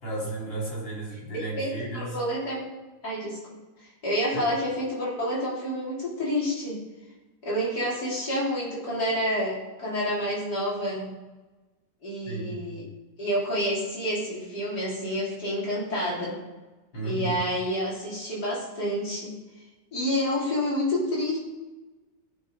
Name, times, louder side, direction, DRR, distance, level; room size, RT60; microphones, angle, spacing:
voice 1, 0.0-2.2 4.3-4.5 12.3-12.7 16.9-17.4, right 2 dB, 90° left, -5 dB, 4.7 m, -33 dB
voice 2, 1.3-2.7 3.0-3.4 4.0-6.8 7.4-11.2 12.0-12.9 13.2-16.3 17.0-19.3 19.9-21.4, equal, 60° left, -7 dB, 3.6 m, -28 dB
15.5 x 6.0 x 3.9 m, 1.2 s
omnidirectional pair, 2.0 m